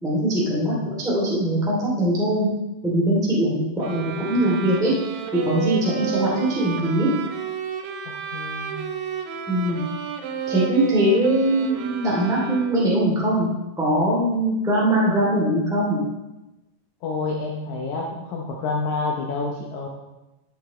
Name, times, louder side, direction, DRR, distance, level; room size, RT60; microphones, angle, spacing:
voice 1, 0.0-2.5 2.8-4.9 5.4-7.1 9.5-9.8 10.5-16.0, right 1 dB, ahead, -6 dB, 1.9 m, -21 dB
voice 2, 0.5-0.8 3.8-4.1 8.3-8.8 9.7-9.8 17.0-19.9, left 3 dB, 80° left, -1 dB, 1.7 m, -29 dB
sound 1, 3.8-13.0, right 7 dB, 85° right, 2.7 m, -32 dB
14.0 x 7.5 x 3.2 m, 1.0 s
omnidirectional pair, 4.6 m